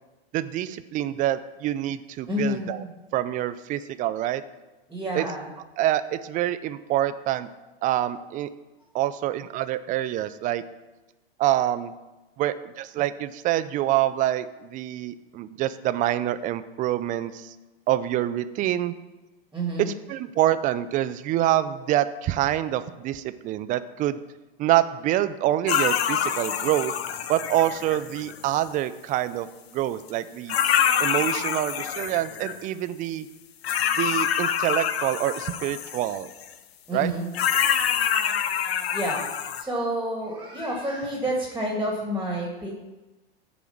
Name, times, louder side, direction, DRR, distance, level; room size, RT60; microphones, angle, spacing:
voice 1, 0.3-2.8 3.1-4.4 5.1-5.3 5.8-7.5 7.8-8.5 8.9-10.6 11.4-11.9 12.4-17.5 17.9-18.9 19.8-24.2 24.6-26.9 27.3-29.5 29.7-30.6 31.0-33.3 34.0-36.3 36.9-37.1, right 13 dB, 25° right, 13 dB, 0.4 m, -26 dB
voice 2, 2.3-2.7 4.9-5.5 19.5-19.9 36.9-37.3 38.9-39.2 39.6-42.7, equal, 5° right, -1 dB, 1.7 m, -29 dB
sound 1, 25.7-28.5 30.1-30.2 30.5-32.6 33.6-36.5 37.3-39.6, left 8 dB, 80° left, 0.7 m, -26 dB
7.0 x 4.9 x 7.0 m, 1.1 s
hypercardioid pair, 115°, 31 cm